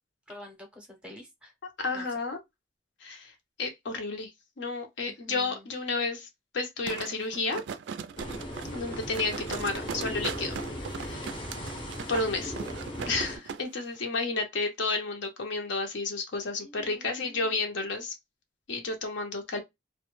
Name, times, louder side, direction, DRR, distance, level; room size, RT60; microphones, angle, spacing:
voice 1, 0.3-1.5 1.9-2.1 5.1-5.6 16.6-17.6, left 1 dB, 5° right, 0.6 m, -48 dB
voice 2, 1.8-2.4 3.0-3.3 3.6-4.3 4.6-6.3 6.5-7.6 8.7-10.5 10.9-11.3 12.1-12.5 13.1-18.1 18.7-19.6, left 3 dB, 70° left, 0.7 m, -31 dB
sound 1, 6.9-13.6 13.9-14.0, right 6 dB, 65° right, 0.3 m, -39 dB
sound 2, 8.2-13.4, equal, 25° left, 0.6 m, -38 dB
2.2 x 2.1 x 3.0 m
head